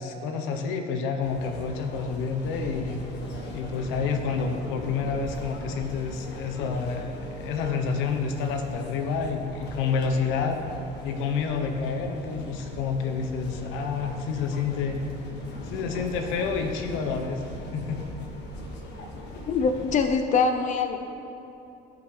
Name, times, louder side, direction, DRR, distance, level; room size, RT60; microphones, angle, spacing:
voice 1, 0.0-3.0 3.5-10.6 11.0-15.0 15.6-17.4 17.7-18.0, left 5 dB, 80° left, 5 dB, 1.0 m, -29 dB
sound 1, 1.2-20.1, left 1 dB, 60° left, 1.3 m, -40 dB
voice 2, 19.5-21.0, left 5 dB, 40° left, 6 dB, 0.6 m, -23 dB
17.5 x 6.1 x 3.3 m, 2.9 s
cardioid pair, 100°, 20 cm